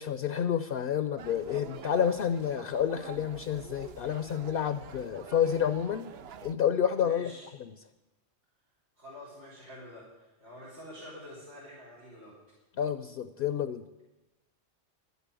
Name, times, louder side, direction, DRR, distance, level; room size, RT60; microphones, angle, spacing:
voice 1, 0.0-6.1 6.4-7.3 7.6-7.7 12.8-14.0, left 8 dB, 60° left, 11 dB, 0.7 m, -29 dB
sound 1, 1.2-6.5, right 7 dB, 65° right, 0.8 m, -46 dB
voice 2, 7.0-7.5 9.0-12.4, left 1 dB, 90° right, -8 dB, 4.3 m, -47 dB
11.5 x 8.3 x 9.0 m, 1.0 s
omnidirectional pair, 1.2 m